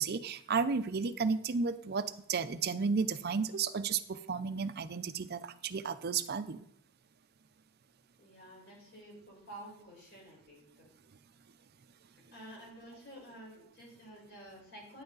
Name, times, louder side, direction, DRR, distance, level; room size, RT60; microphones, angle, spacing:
voice 1, 0.0-6.6, right 5 dB, 45° right, 12 dB, 0.5 m, -33 dB
voice 2, 8.2-10.9 12.3-15.0, right 1 dB, 50° left, -3 dB, 4.5 m, -51 dB
9.6 x 8.0 x 3.9 m, 0.69 s
head